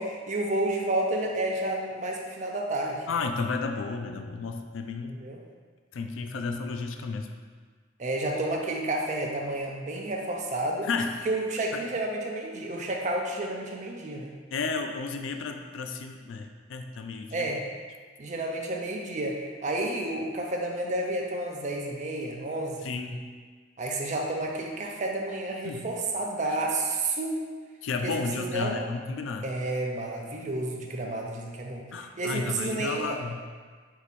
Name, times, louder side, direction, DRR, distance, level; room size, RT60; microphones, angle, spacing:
voice 1, 0.0-3.1 5.0-5.4 8.0-10.9 11.2-14.3 17.3-17.6 18.2-22.8 23.8-27.4 28.0-28.9 29.4-31.9 32.2-33.2, right 2 dB, 40° right, 0 dB, 0.5 m, -30 dB
voice 2, 3.1-5.2 5.9-7.3 10.8-11.2 14.5-17.5 22.8-23.2 25.6-25.9 26.5-26.6 27.8-29.5 31.9-33.4, left 4 dB, 90° left, 5 dB, 0.4 m, -32 dB
4.6 x 2.7 x 4.2 m, 1.5 s
head